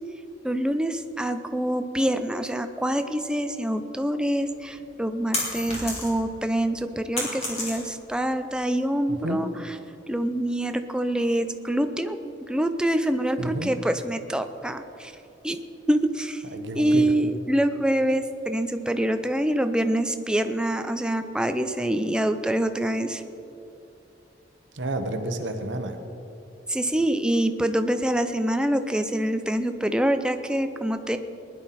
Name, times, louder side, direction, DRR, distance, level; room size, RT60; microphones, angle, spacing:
voice 1, 0.4-9.8 10.1-12.2 12.5-15.1 15.4-15.6 15.9-16.4 16.7-23.2 26.7-31.2, right 1 dB, 5° right, 8 dB, 0.5 m, -25 dB
sound 1, 4.5-6.3 6.7-8.2, left 2 dB, 35° left, 3.3 m, -31 dB
voice 2, 9.1-9.5 13.4-13.7 16.5-17.1 24.7-26.0, right 1 dB, 70° right, 6 dB, 1.0 m, -30 dB
19.5 x 11.0 x 4.2 m, 2.7 s
head